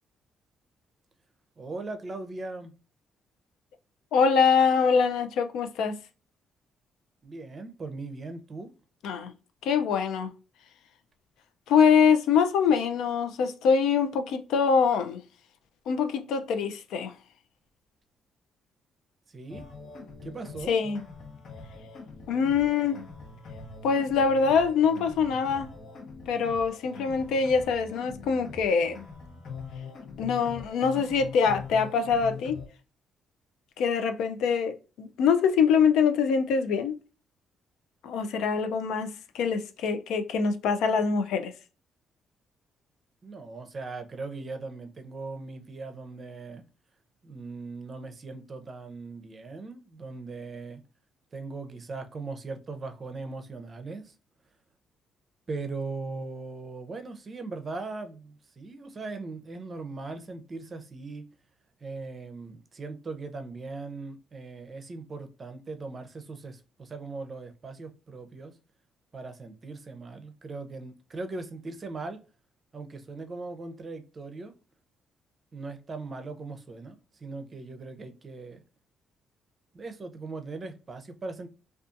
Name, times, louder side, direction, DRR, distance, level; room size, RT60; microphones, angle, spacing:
voice 1, 1.6-2.7 7.2-8.7 19.3-19.7 20.2-20.7 43.2-46.6 47.2-50.8 51.3-54.2 55.5-61.2 61.8-68.6 69.1-72.2 72.7-74.5 75.5-78.6 79.7-81.5, right 3 dB, 40° right, 0.5 m, -39 dB
voice 2, 4.1-6.0 9.0-9.3 9.6-10.3 11.7-15.2 15.9-17.1 20.7-21.0 22.3-23.0 23.8-25.7 26.3-29.0 30.2-32.6 33.8-37.0 38.0-41.5, left 6 dB, 85° left, 0.3 m, -24 dB
sound 1, 19.5-32.7, left 4 dB, 60° left, 0.8 m, -43 dB
2.5 x 2.3 x 2.4 m
cardioid pair, 90°, 0 cm